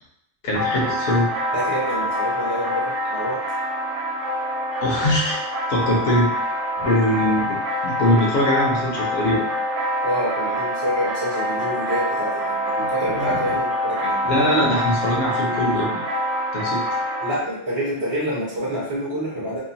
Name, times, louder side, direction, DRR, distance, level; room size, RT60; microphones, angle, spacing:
voice 1, 0.4-1.3 4.8-5.4 5.7-6.3 6.8-9.4 12.8-13.4 14.2-16.0 16.5-16.8, left 1 dB, 60° left, -3 dB, 1.0 m, -22 dB
sound 1, 0.5-17.4, equal, 80° right, 0.9 m, -25 dB
voice 2, 1.5-3.4 6.8-7.3 10.0-14.2 17.2-19.6, equal, 30° right, -8 dB, 0.6 m, -27 dB
2.8 x 2.1 x 2.7 m, 0.73 s
omnidirectional pair, 1.2 m